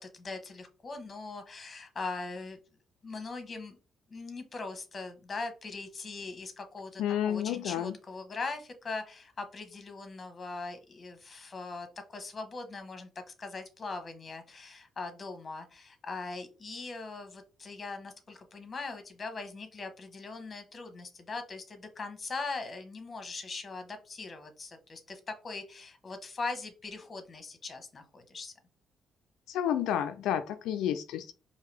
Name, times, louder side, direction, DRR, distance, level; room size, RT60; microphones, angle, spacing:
voice 1, 0.0-2.6 3.0-3.8 4.1-13.1 13.4-28.5, left 3 dB, 35° left, 1.1 m, -40 dB
voice 2, 7.0-7.9 29.5-31.3, left 10 dB, 85° left, 0.3 m, -30 dB
4.7 x 2.7 x 3.3 m
cardioid pair, 90°, 0 cm